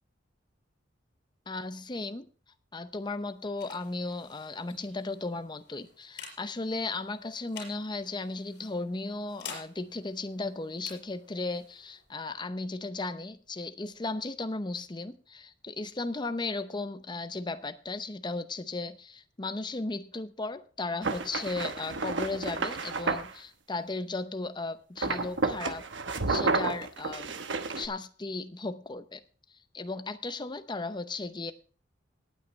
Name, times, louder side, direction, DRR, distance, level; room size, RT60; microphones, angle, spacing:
voice 1, 1.5-2.3 2.7-25.9 26.3-27.4 27.7-29.2 29.5-31.5, left 3 dB, 25° left, 11 dB, 0.7 m, -36 dB
sound 1, 2.8-14.2, left 6 dB, 60° left, 5.2 m, -51 dB
sound 2, 21.0-23.3 25.0-27.9, right 3 dB, 70° right, 1.1 m, -31 dB
19.0 x 8.9 x 3.2 m, 0.37 s
head